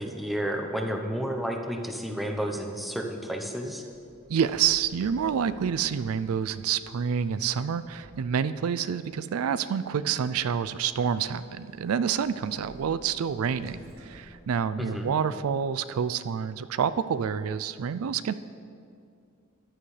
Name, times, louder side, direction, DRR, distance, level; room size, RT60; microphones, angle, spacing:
voice 1, 0.0-3.8 14.8-15.1, equal, ahead, 2 dB, 0.8 m, -31 dB
Sliding door, 3.9-8.7 10.3-15.3, right 1 dB, 70° right, 2.2 m, -53 dB
voice 2, 4.3-18.3, right 7 dB, 90° right, 14 dB, 0.4 m, -28 dB
14.5 x 11.0 x 3.3 m, 2.4 s
head